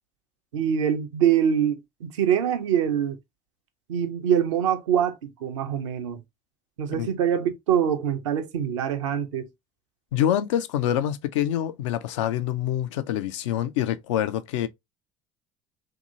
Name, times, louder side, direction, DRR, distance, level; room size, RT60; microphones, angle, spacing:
voice 1, 0.5-3.2 3.9-6.2 6.8-9.5, right 9 dB, 80° right, 0.6 m, -24 dB
voice 2, 10.1-14.7, left 11 dB, 75° left, 0.4 m, -26 dB
2.9 x 2.8 x 2.4 m
hypercardioid pair, 65°, 16 cm